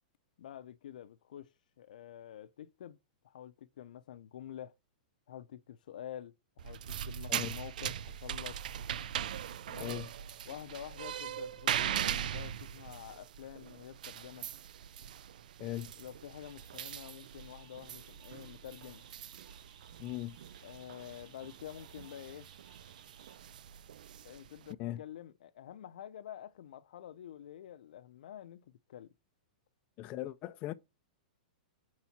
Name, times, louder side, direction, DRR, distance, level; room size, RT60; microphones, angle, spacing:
voice 1, 0.4-1.5 1.8-3.0 3.2-4.7 5.3-8.6 9.7-10.0 10.5-14.5 16.0-19.0 20.6-22.5 24.2-29.1, left 10 dB, 70° left, 0.6 m, -48 dB
sound 1, 6.6-24.7, right 10 dB, 70° right, 0.4 m, -41 dB
voice 2, 15.6-15.9 20.0-20.4 24.8-25.0 30.0-30.7, left 15 dB, 30° left, 0.3 m, -39 dB
sound 2, 16.4-23.4, right 7 dB, 55° right, 1.7 m, -61 dB
4.6 x 4.3 x 5.9 m
hypercardioid pair, 155°, 5 cm